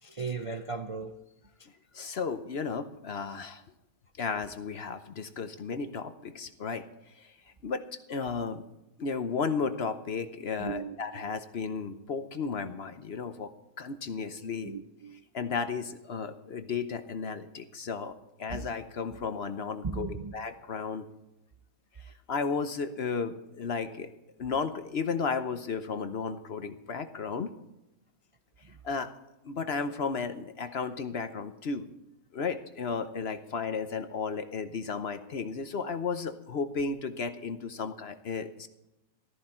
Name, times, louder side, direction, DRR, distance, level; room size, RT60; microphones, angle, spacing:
voice 1, 0.0-1.2 10.6-11.4 14.6-15.3 18.5-18.6 19.8-20.3, right 5 dB, 35° right, 5 dB, 0.5 m, -37 dB
voice 2, 1.9-3.6 4.2-6.8 7.2-7.3 7.6-7.8 8.1-8.6 9.0-13.5 13.8-14.7 15.3-18.1 18.4-21.1 22.0-24.1 24.4-27.5 28.8-29.1 29.4-31.8 32.3-38.7, left 5 dB, 50° left, 9 dB, 0.9 m, -34 dB
14.0 x 13.5 x 4.4 m, 0.95 s
omnidirectional pair, 1.5 m